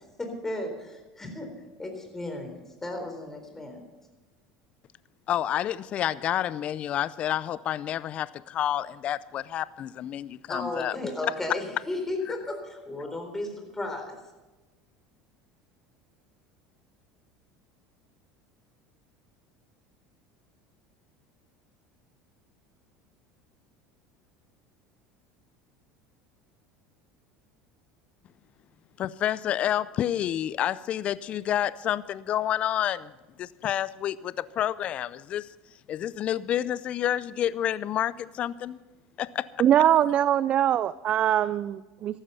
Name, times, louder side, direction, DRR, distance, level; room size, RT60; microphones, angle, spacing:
voice 1, 0.2-1.5 1.8-3.8 10.5-14.2, left 2 dB, 15° left, 4.0 m, -34 dB
voice 2, 5.3-11.0 29.0-33.1 33.4-35.5 35.9-38.8 39.2-39.5, left 11 dB, 45° left, 0.5 m, -29 dB
voice 3, 39.6-42.2, right 10 dB, 45° right, 0.4 m, -22 dB
14.5 x 12.0 x 5.6 m
supercardioid pair, 95°, 3 cm